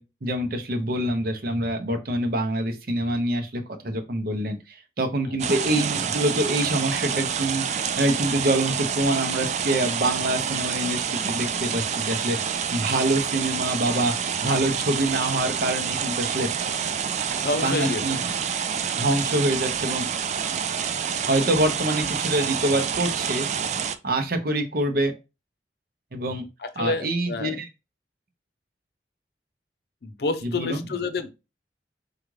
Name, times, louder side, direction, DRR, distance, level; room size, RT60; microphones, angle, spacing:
voice 1, 0.0-14.1 14.4-16.5 17.6-18.4 19.0-20.1 21.3-23.5 24.0-25.1 26.1-26.4 26.8-27.7 30.4-30.8, right 1 dB, 55° right, 0.8 m, -25 dB
sound 1, 5.4-23.9, right 7 dB, 40° right, 0.3 m, -28 dB
voice 2, 17.4-18.0 26.6-27.6 30.0-31.3, left 3 dB, 60° left, 0.6 m, -28 dB
4.9 x 2.4 x 3.2 m
head